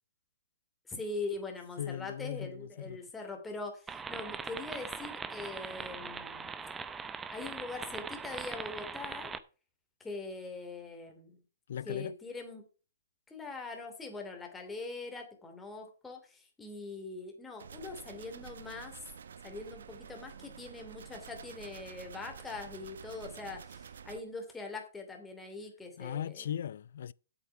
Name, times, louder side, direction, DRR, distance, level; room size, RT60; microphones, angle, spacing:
voice 1, 0.9-6.5 7.3-9.3 10.0-11.4 11.8-12.7 13.3-19.0 19.4-26.5, left 3 dB, 10° left, 2.7 m, -42 dB
voice 2, 1.8-3.0 11.7-12.1 26.0-27.1, left 9 dB, 65° left, 0.4 m, -38 dB
sound 1, 3.9-9.4, right 5 dB, 10° right, 0.6 m, -41 dB
sound 2, 17.6-24.2, right 7 dB, 75° right, 0.9 m, -49 dB
8.2 x 8.0 x 5.6 m
hypercardioid pair, 140°, 0 cm